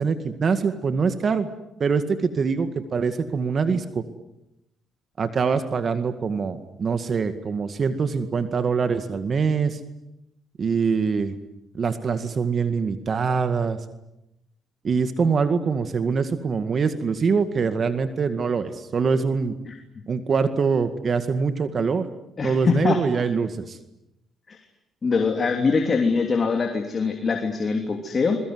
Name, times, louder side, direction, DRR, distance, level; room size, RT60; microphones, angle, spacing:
voice 1, 0.0-1.5 1.8-4.0 5.2-9.8 10.6-11.3 11.7-13.8 14.8-19.5 20.1-22.1 22.4-23.8, right 5 dB, 45° right, 10 dB, 2.0 m, -24 dB
voice 2, 22.4-23.0 24.5-24.6 25.0-28.4, left 4 dB, 40° left, 4 dB, 3.2 m, -23 dB
27.5 x 22.5 x 8.0 m, 0.87 s
cardioid pair, 90°, 0 cm